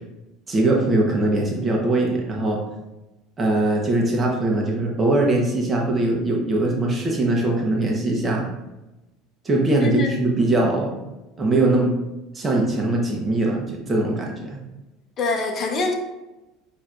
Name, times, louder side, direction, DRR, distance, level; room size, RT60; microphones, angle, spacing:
voice 1, 0.5-2.6 3.4-8.4 9.4-10.9 11.4-12.0 12.3-14.6, right 2 dB, 25° right, -1 dB, 1.1 m, -21 dB
voice 2, 9.8-10.2 15.2-15.9, left 2 dB, 40° left, 4 dB, 0.7 m, -24 dB
6.5 x 3.0 x 2.5 m, 1.0 s
hypercardioid pair, 85°, 0 cm